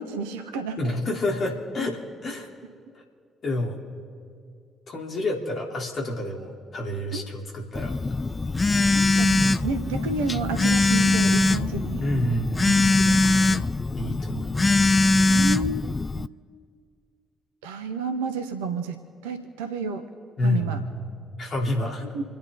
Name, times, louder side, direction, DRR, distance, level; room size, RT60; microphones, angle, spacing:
voice 1, 0.0-0.9 7.1-7.2 8.9-12.0 13.0-13.6 15.3-15.9 16.2-16.3 17.6-20.0 20.4-20.8 22.1-22.2, right 4 dB, 70° right, 8 dB, 1.1 m, -31 dB
voice 2, 0.8-2.5 2.9-3.0 3.4-3.8 4.9-7.9 12.0-13.0 13.9-14.8 15.2-15.3 20.4-21.0 21.4-22.0, left 1 dB, 45° left, -1 dB, 3.7 m, -29 dB
Telephone, 7.7-16.3, left 2 dB, 25° left, 0.5 m, -22 dB
29.0 x 10.0 x 4.0 m, 2.2 s
figure-of-eight pair, 45°, 0 cm